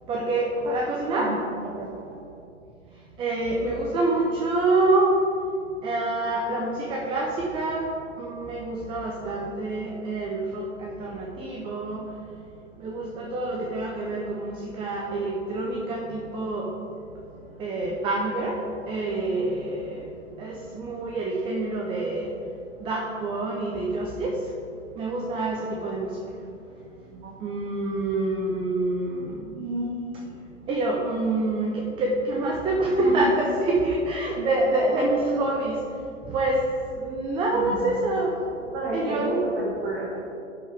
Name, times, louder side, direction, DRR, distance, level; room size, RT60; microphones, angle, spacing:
voice 1, 0.1-1.3 3.2-5.1 5.8-7.9 8.2-12.0 12.8-16.7 17.6-18.5 18.9-20.0 20.4-22.3 22.8-24.4 25.0-26.1 27.4-29.5 30.7-35.8 36.3-36.6 37.0-38.3 38.9-39.4, right 2 dB, 15° right, -2 dB, 0.6 m, -26 dB
voice 2, 1.1-2.0 27.1-27.4 29.5-30.0 33.0-33.2 34.3-34.5 37.5-38.0 38.7-40.2, right 1 dB, 40° right, -6 dB, 1.7 m, -31 dB
11.5 x 4.9 x 3.5 m, 2.6 s
hypercardioid pair, 120°, 37 cm